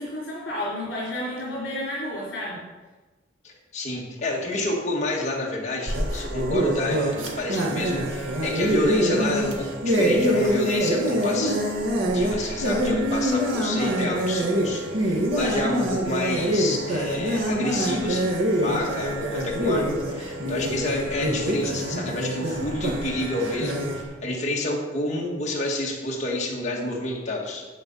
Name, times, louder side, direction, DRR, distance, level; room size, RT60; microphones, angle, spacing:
voice 1, 0.0-2.6, left 1 dB, 60° left, -6 dB, 3.3 m, -31 dB
voice 2, 3.4-11.6 12.1-27.7, left 1 dB, 35° left, -2 dB, 1.8 m, -29 dB
sound 1, 5.9-24.0, equal, 85° right, 1.9 m, -25 dB
10.5 x 7.8 x 5.5 m, 1.2 s
head